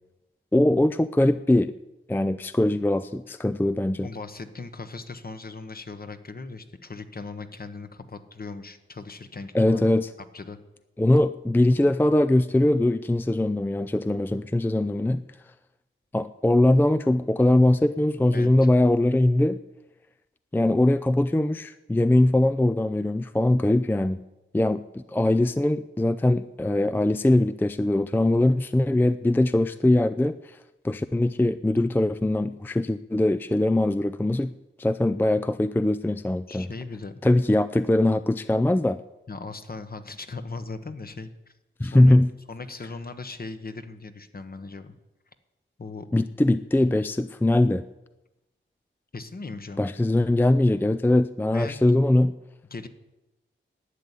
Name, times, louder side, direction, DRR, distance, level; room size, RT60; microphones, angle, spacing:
voice 1, 0.5-1.7 2.1-4.1 9.5-10.1 11.0-15.2 16.1-19.6 20.5-24.2 24.5-30.6 30.8-34.5 34.8-36.7 37.2-39.0 41.8-42.3 46.1-47.8 49.8-52.4, left 1 dB, 10° left, 12 dB, 0.4 m, -21 dB
voice 2, 4.0-9.8 10.3-10.6 18.3-18.5 36.5-37.1 39.3-41.5 41.8-42.2 42.5-44.9 45.8-46.1 49.1-49.8 51.5-51.8 52.7-52.9, left 3 dB, 45° left, 9 dB, 1.2 m, -38 dB
11.5 x 8.2 x 10.0 m, 0.98 s
wide cardioid pair, 85°, 21 cm